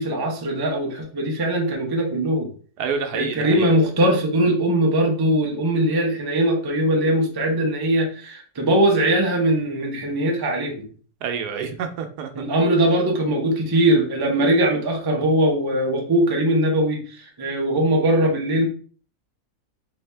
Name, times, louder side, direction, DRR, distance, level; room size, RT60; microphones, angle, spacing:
voice 1, 0.0-2.5 3.1-10.9 12.3-18.7, right 1 dB, 30° right, 1 dB, 0.4 m, -21 dB
voice 2, 2.8-3.7 11.2-12.3, right 6 dB, 85° right, 5 dB, 1.2 m, -28 dB
4.1 x 2.7 x 3.2 m, 0.43 s
omnidirectional pair, 1.7 m